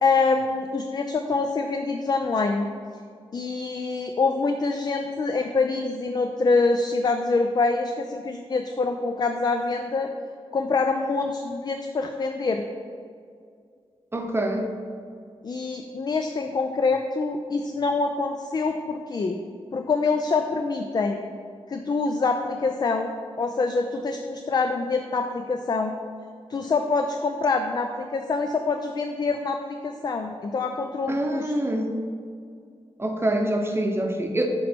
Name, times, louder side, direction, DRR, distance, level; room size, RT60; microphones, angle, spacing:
voice 1, 0.0-2.7 3.3-10.1 10.5-12.6 15.4-19.4 19.7-21.2 21.7-25.9 26.5-29.6 29.8-31.5, left 4 dB, 40° left, 5 dB, 0.4 m, -25 dB
voice 2, 14.1-14.7 31.1-31.9 33.0-34.5, right 1 dB, 25° right, 4 dB, 0.7 m, -25 dB
8.2 x 3.1 x 4.4 m, 2.2 s
cardioid pair, 75°, 10 cm